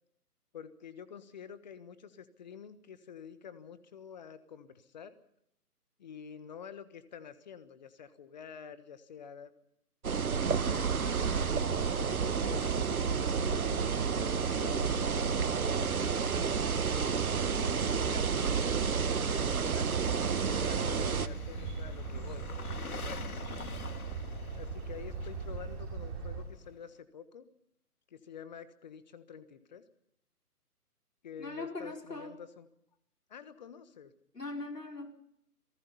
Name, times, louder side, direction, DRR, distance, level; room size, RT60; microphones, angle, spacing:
voice 1, 0.5-5.1 6.0-9.5 10.4-11.3 11.9-16.3 16.8-23.7 24.5-27.5 28.1-29.8 31.2-32.7 33.3-34.1, left 7 dB, 30° left, 14 dB, 1.3 m, -48 dB
sound 1, 10.0-21.3, right 6 dB, 65° right, 1.3 m, -30 dB
sound 2, 10.4-26.4, right 5 dB, 20° right, 2.6 m, -39 dB
sound 3, 11.2-15.0 19.2-26.9, left 5 dB, 65° left, 1.8 m, -48 dB
voice 2, 31.4-32.3 34.3-35.1, left 2 dB, 85° left, 3 dB, 4.8 m, -40 dB
26.5 x 19.0 x 5.6 m, 0.74 s
figure-of-eight pair, 145°, 46 cm